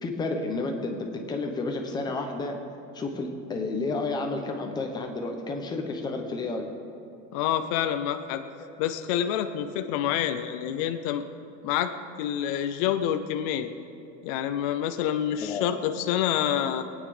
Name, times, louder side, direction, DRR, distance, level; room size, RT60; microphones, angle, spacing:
voice 1, 0.0-2.6 2.9-6.7 8.6-8.7 15.4-15.7, left 3 dB, 10° left, 3 dB, 0.8 m, -31 dB
voice 2, 7.3-8.4 8.8-11.2 11.6-11.9 12.2-13.7 14.2-16.8, left 10 dB, 30° left, 7 dB, 0.4 m, -27 dB
21.0 x 9.2 x 4.8 m, 2.6 s
supercardioid pair, 175°, 37 cm